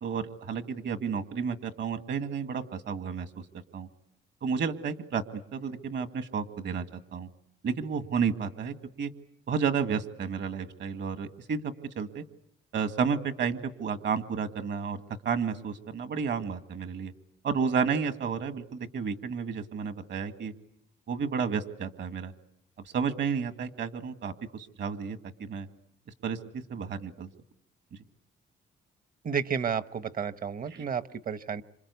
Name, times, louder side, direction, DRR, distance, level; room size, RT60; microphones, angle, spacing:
voice 1, 0.0-3.3 3.7-3.9 4.4-5.2 5.5-7.3 7.6-9.1 9.5-12.2 12.7-15.0 15.3-17.1 17.4-20.5 21.1-22.3 22.9-25.7 26.2-27.3 30.7-30.8, right 6 dB, 60° right, 9 dB, 2.0 m, -31 dB
voice 2, 29.2-31.6, right 7 dB, 45° right, 13 dB, 1.1 m, -31 dB
27.0 x 25.5 x 8.3 m, 0.77 s
cardioid pair, 90°, 20 cm